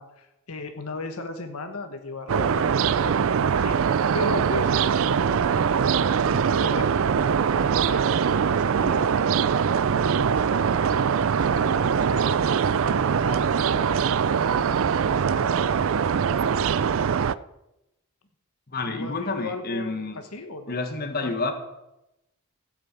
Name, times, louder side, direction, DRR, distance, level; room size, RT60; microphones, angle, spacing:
voice 1, 0.0-3.2 3.6-3.8 4.1-6.9 7.2-15.6 18.9-20.8 21.2-21.3, left 3 dB, 75° left, 7 dB, 1.2 m, -37 dB
sound 1, 2.3-17.4, right 7 dB, 65° right, 0.4 m, -22 dB
voice 2, 18.7-20.2 20.7-21.5, left 3 dB, 45° left, 7 dB, 1.5 m, -29 dB
14.5 x 6.8 x 8.3 m, 0.92 s
head